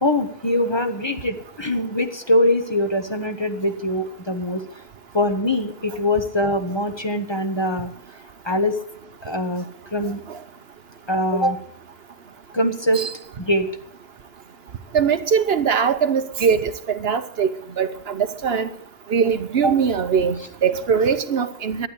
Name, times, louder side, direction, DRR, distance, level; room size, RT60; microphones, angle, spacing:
voice 1, 0.0-4.6 5.1-7.9 8.4-8.8 9.2-10.2 11.1-11.6 12.5-13.0 13.4-13.7 19.6-19.7, left 1 dB, 25° left, 1.1 m, -22 dB
voice 2, 14.9-17.5 17.8-18.7 19.1-21.9, right 6 dB, 65° right, 1.1 m, -21 dB
12.0 x 9.8 x 8.2 m
omnidirectional pair, 1.1 m